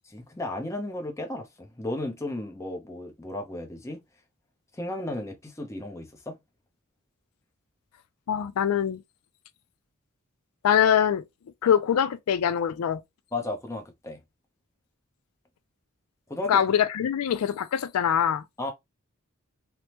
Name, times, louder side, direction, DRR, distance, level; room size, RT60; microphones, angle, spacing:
voice 1, 0.1-4.0 4.7-6.4 13.3-14.2 16.3-16.6 18.6-18.7, left 2 dB, 15° left, 0.6 m, -34 dB
voice 2, 8.3-9.0 10.6-11.2 11.6-13.0 16.5-18.4, left 9 dB, 90° left, 0.4 m, -23 dB
3.3 x 2.0 x 2.9 m
head